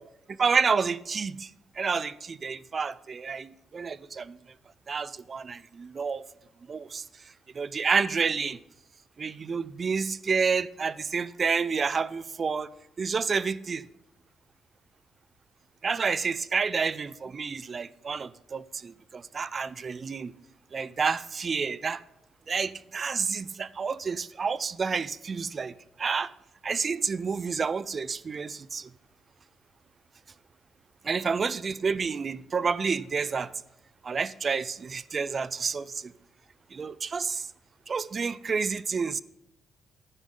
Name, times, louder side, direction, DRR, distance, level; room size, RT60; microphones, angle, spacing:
voice 1, 0.4-1.5 1.8-4.4 4.9-6.2 6.7-7.0 7.5-8.6 9.2-12.7 13.0-13.9 15.8-20.3 20.7-22.0 22.5-26.3 26.6-28.9 31.0-33.5 34.0-36.1 36.7-37.5 37.9-39.2, right 5 dB, 40° right, 0.4 m, -29 dB
10.5 x 9.9 x 3.8 m
cardioid pair, 90°, 0 cm